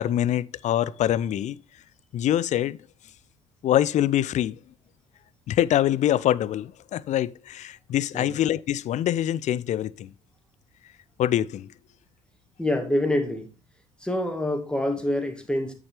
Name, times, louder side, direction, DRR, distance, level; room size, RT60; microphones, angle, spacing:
voice 1, 0.0-1.6 2.1-2.8 3.6-4.6 5.5-10.1 11.2-11.7, left 12 dB, 40° left, 0.4 m, -24 dB
voice 2, 12.6-13.5 14.0-15.7, left 1 dB, 5° left, 2.0 m, -26 dB
8.7 x 7.4 x 3.2 m
figure-of-eight pair, 50°, 18 cm